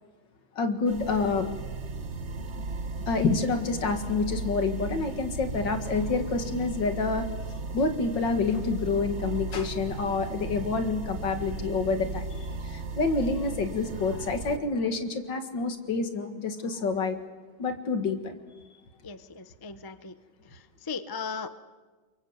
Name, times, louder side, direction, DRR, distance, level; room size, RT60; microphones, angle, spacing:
voice 1, 0.6-1.5 3.1-7.3 7.7-12.3 12.6-17.2 17.6-18.4, left 4 dB, 65° left, 7 dB, 2.6 m, -28 dB
sound 1, 0.9-14.6, right 3 dB, 40° right, 1.3 m, -36 dB
voice 2, 19.0-20.1 20.5-21.5, left 5 dB, 25° left, 11 dB, 0.5 m, -37 dB
28.5 x 23.0 x 8.1 m, 1.3 s
omnidirectional pair, 2.2 m